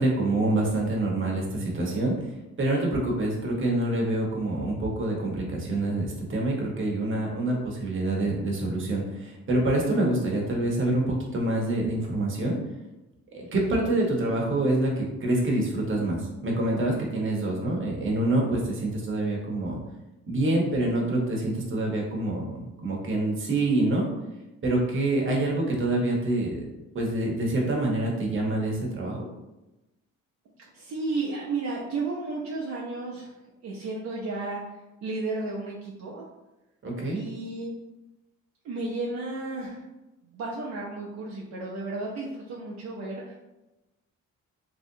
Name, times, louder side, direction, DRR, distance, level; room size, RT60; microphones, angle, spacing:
voice 1, 0.0-2.1 2.6-12.6 13.3-19.8 20.3-24.1 24.6-26.6 26.9-29.2 36.8-37.2, right 2 dB, 40° right, -1 dB, 1.0 m, -26 dB
voice 2, 30.7-33.3 33.6-34.6 35.0-36.2 37.1-37.7 38.6-39.8 40.2-43.4, right 3 dB, 65° right, -4 dB, 0.7 m, -33 dB
3.1 x 2.7 x 2.7 m, 1.0 s
cardioid pair, 90°, 30 cm